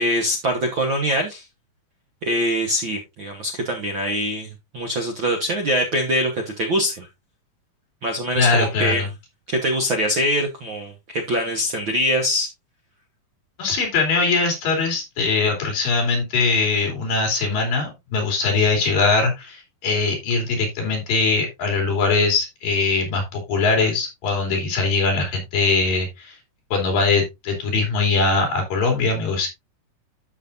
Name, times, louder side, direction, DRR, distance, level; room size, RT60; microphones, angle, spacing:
voice 1, 0.0-1.4 2.3-7.1 8.0-9.1 9.5-12.5, equal, 70° right, 1.1 m, -23 dB
voice 2, 8.4-9.1 13.6-26.4 26.7-29.5, left 4 dB, 70° left, 4.5 m, -21 dB
12.5 x 6.1 x 2.5 m
omnidirectional pair, 4.1 m